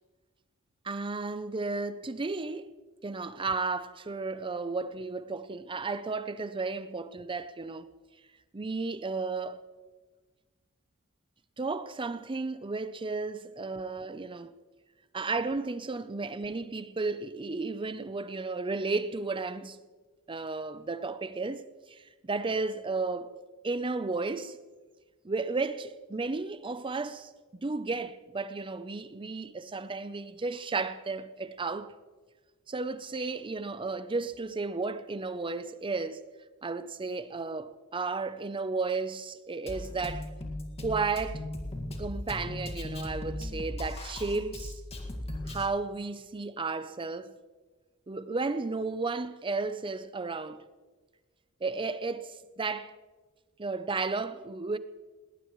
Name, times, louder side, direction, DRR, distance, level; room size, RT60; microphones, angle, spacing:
voice 1, 0.8-2.7 3.0-7.9 8.5-9.6 11.6-14.5 15.1-19.8 20.3-21.6 21.9-22.0 22.2-23.3 23.6-24.6 25.2-27.3 27.6-31.9 32.7-36.2 36.6-40.3 40.8-41.5 42.0-44.7 45.5-47.3 48.1-50.6 51.6-52.9 53.6-54.8, right 3 dB, 25° right, 0.6 m, -33 dB
Drum kit, 39.7-45.7, left 1 dB, 30° left, 1.9 m, -37 dB
19.5 x 18.5 x 3.1 m
head